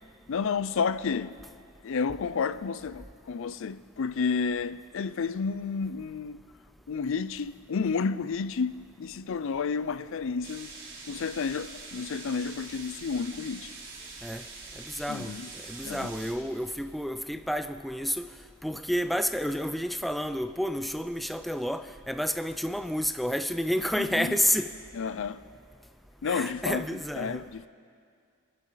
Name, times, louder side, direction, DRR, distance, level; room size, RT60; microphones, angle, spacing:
voice 1, 0.3-1.4 1.8-6.4 6.9-10.7 11.1-13.7 15.1-15.5 15.8-16.1 24.0-24.4 24.9-25.4 26.2-26.8 27.2-27.7, left 5 dB, 65° left, 0.4 m, -31 dB
sound 1, 10.4-16.3, right 4 dB, 60° right, 4.7 m, -44 dB
voice 2, 14.8-15.3 15.7-18.3 18.6-24.7 26.3-27.5, equal, ahead, 0.4 m, -30 dB
26.5 x 11.5 x 4.0 m
head